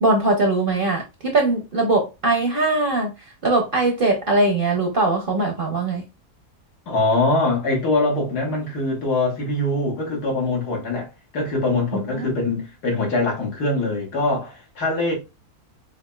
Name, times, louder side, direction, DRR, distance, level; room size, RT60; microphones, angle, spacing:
voice 1, 0.0-3.1 3.4-6.0 12.1-12.6, right 2 dB, 55° right, 0.6 m, -21 dB
voice 2, 6.9-15.1, left 2 dB, 90° left, 1.9 m, -23 dB
4.9 x 2.5 x 2.2 m
omnidirectional pair, 1.6 m